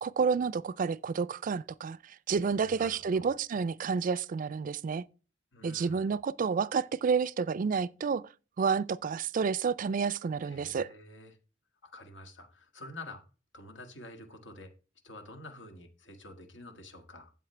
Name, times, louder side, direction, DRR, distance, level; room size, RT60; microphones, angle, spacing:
voice 1, 0.0-2.0 2.3-5.0 5.6-8.2 8.6-10.9, right 5 dB, 45° right, 0.3 m, -30 dB
voice 2, 2.6-3.3 5.5-6.1 10.4-11.4 11.8-13.3 13.5-14.8 15.0-17.3, left 2 dB, 90° left, 1.7 m, -48 dB
12.5 x 7.8 x 3.3 m
head